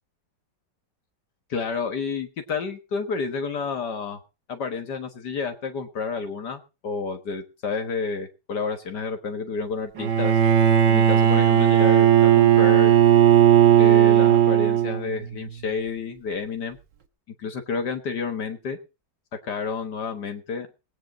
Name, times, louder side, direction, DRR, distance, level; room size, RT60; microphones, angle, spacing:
voice 1, 1.5-4.2 4.5-10.4 10.9-13.0 13.8-16.8 17.4-18.8 19.4-20.7, left 5 dB, 70° left, 6 dB, 2.0 m, -30 dB
Bowed string instrument, 10.0-15.2, right 10 dB, 85° right, 2.2 m, -16 dB
19.0 x 8.8 x 5.1 m, 0.31 s
omnidirectional pair, 1.9 m